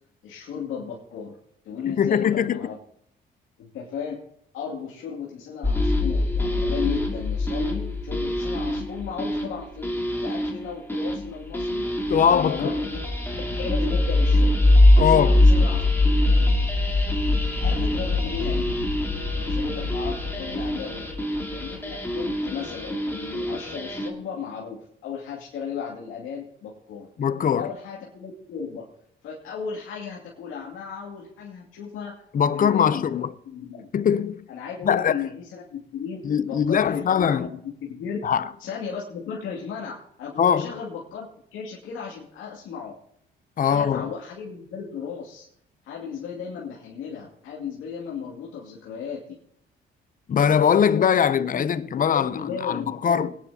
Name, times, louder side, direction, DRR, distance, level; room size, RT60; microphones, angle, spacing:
voice 1, 0.2-1.4 1.6-2.8 3.6-4.2 4.5-9.9 10.2-11.9 12.3-13.0 13.5-14.7 15.0-16.6 17.6-18.7 19.4-21.1 21.5-27.1 27.5-28.9 29.2-32.2 32.5-33.9 34.5-38.2 38.6-41.3 41.5-43.0 43.6-45.5 45.8-49.4 51.4-51.6 51.9-53.3, left 6 dB, 90° left, 2.5 m, -35 dB
voice 2, 1.9-2.7 12.1-12.8 15.0-15.4 27.2-27.7 32.3-33.3 33.9-34.4 34.8-35.2 36.2-37.5 38.2-38.5 40.4-40.8 43.6-44.1 50.3-53.3, left 8 dB, 45° left, 0.6 m, -21 dB
sound 1, 5.6-24.1, left 1 dB, 10° left, 2.3 m, -23 dB
22.0 x 10.0 x 2.8 m
cardioid pair, 90°, 20 cm